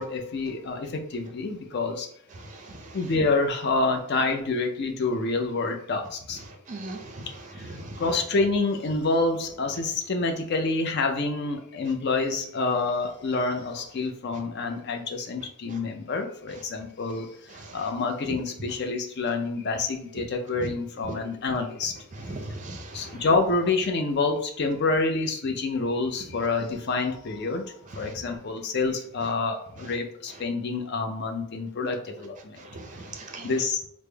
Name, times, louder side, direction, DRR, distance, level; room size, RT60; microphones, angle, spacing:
voice 1, 0.0-2.1 2.9-6.4 7.6-22.0 22.3-22.4 22.9-32.6 33.4-33.9, left 3 dB, 50° left, 4 dB, 0.4 m, -27 dB
voice 2, 6.7-7.3 7.8-7.9 22.5-23.1 32.7-33.5, right 2 dB, 35° right, 4 dB, 0.5 m, -38 dB
3.4 x 2.0 x 3.3 m, 0.67 s
head